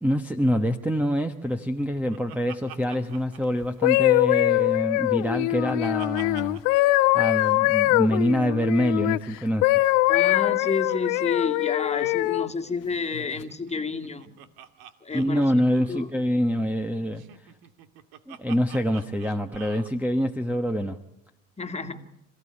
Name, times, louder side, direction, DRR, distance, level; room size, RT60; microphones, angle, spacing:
voice 1, 0.0-6.6 7.1-9.9 15.1-17.5 18.3-21.0, equal, 5° right, 9 dB, 1.2 m, -25 dB
Laughter, 1.4-4.4 4.7-6.8 7.1-7.2 7.3-7.6 8.8-11.2 11.5-11.6 11.9-12.2 13.3-16.1 17.1-19.9, right 10 dB, 65° right, 2.3 m, -48 dB
sound 1, 3.6-9.2 9.6-12.5 13.1-13.4, left 19 dB, 80° left, 1.0 m, -22 dB
voice 2, 10.1-14.4 15.0-15.4 15.9-16.1 21.6-22.1, left 4 dB, 15° left, 4 dB, 2.3 m, -30 dB
27.0 x 16.5 x 9.9 m, 0.88 s
supercardioid pair, 95°, 38 cm